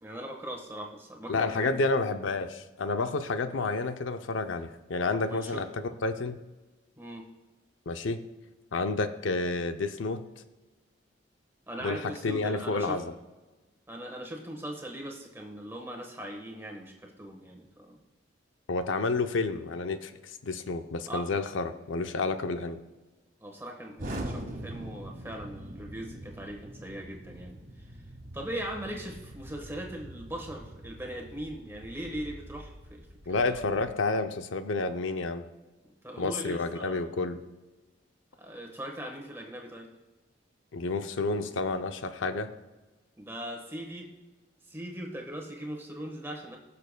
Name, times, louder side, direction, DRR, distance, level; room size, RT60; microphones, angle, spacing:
voice 1, 0.0-1.8 3.4-3.5 5.3-5.7 7.0-7.2 11.7-13.0 13.9-18.0 21.1-21.3 23.4-28.0 28.3-33.1 33.5-33.9 36.0-37.0 38.4-39.9 43.2-44.1 44.6-46.6, right 1 dB, 10° right, 1 dB, 1.3 m, -40 dB
voice 2, 1.3-6.4 7.9-8.2 8.7-10.2 11.8-12.0 12.2-13.1 18.7-22.8 33.3-35.5 36.2-37.4 40.7-42.5, left 3 dB, 80° left, 9 dB, 0.6 m, -30 dB
Explosion, 24.0-33.9, right 1 dB, 45° right, 1.6 m, -43 dB
20.0 x 6.8 x 2.2 m, 1.2 s
head